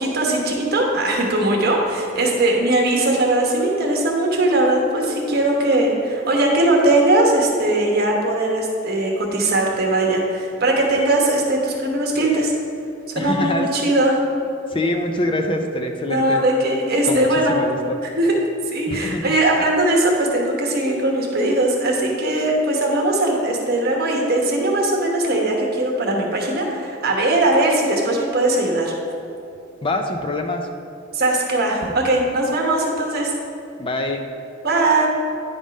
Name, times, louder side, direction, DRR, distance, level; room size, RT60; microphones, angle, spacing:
voice 1, 0.0-12.5 13.1-14.2 16.1-17.6 18.2-28.9 31.1-33.3 34.6-35.1, right 2 dB, 50° right, 0 dB, 1.2 m, -19 dB
voice 2, 13.2-13.7 14.7-16.4 17.0-18.0 18.9-19.2 29.8-30.7 33.8-34.2, left 1 dB, 25° left, 5 dB, 0.4 m, -24 dB
9.8 x 3.6 x 5.1 m, 2.6 s
head